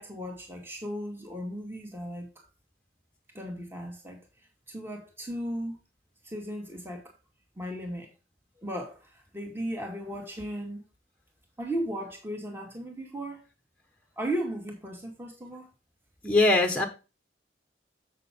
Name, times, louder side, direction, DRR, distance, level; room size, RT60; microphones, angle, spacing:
voice 1, 0.0-2.5 3.3-4.2 4.7-5.8 6.2-7.1 7.6-8.1 8.6-10.8 11.6-13.4 14.2-15.7, right 1 dB, 10° right, 2.0 m, -36 dB
voice 2, 16.2-16.8, left 2 dB, 5° left, 1.2 m, -21 dB
7.6 x 6.6 x 3.6 m
head